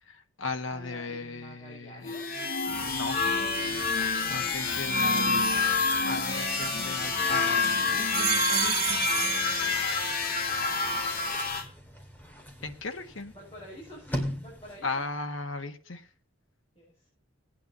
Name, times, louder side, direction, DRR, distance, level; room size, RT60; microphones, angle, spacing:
voice 1, 0.1-2.1 2.7-3.4 3.9-5.5 6.0-9.0 12.6-13.3 14.8-16.0, left 3 dB, 75° left, 7 dB, 1.5 m, -37 dB
voice 2, 0.7-2.2 4.5-4.7 10.0-11.3 11.5-11.7 13.3-15.0 16.7-17.1, equal, 25° left, -7 dB, 7.5 m, -49 dB
sound 1, 2.0-11.6, left 4 dB, 45° left, 1.8 m, -28 dB
sound 2, 2.5-15.0, equal, 10° left, 2.4 m, -43 dB
sound 3, 6.3-7.5 7.9-10.3 10.7-11.3, right 14 dB, 85° right, 0.6 m, -33 dB
19.5 x 9.4 x 2.8 m, 0.40 s
head